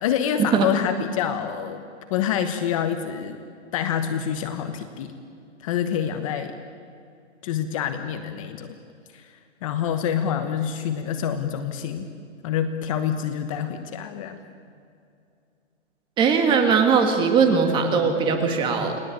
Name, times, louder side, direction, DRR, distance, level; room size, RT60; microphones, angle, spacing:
voice 1, 0.0-1.8 2.1-3.4 3.7-5.1 5.6-6.6 7.4-8.8 9.1-12.1 12.4-14.4, left 9 dB, 30° left, 8 dB, 1.2 m, -27 dB
voice 2, 16.2-19.0, right 5 dB, 15° right, 5 dB, 2.0 m, -20 dB
30.0 x 20.0 x 8.7 m, 2.5 s
hypercardioid pair, 170°, 36 cm